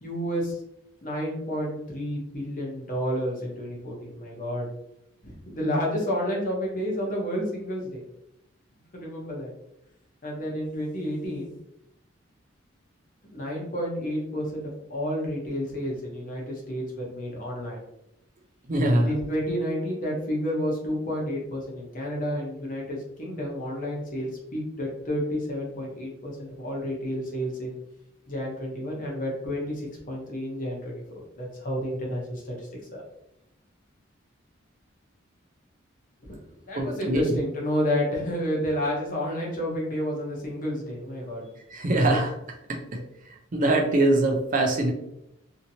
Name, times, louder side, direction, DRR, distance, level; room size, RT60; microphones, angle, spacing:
voice 1, 0.0-0.6 1.0-4.7 5.2-8.0 8.9-9.5 10.2-11.5 13.3-17.8 19.0-27.7 28.3-32.6 32.9-33.0 36.2-36.4 36.7-41.5, equal, 40° left, -2 dB, 0.8 m, -30 dB
voice 2, 18.7-19.1 36.8-37.3 41.7-42.3 42.7-42.8 43.5-44.9, right 1 dB, 40° right, 1 dB, 0.5 m, -22 dB
2.8 x 2.7 x 2.7 m, 0.83 s
head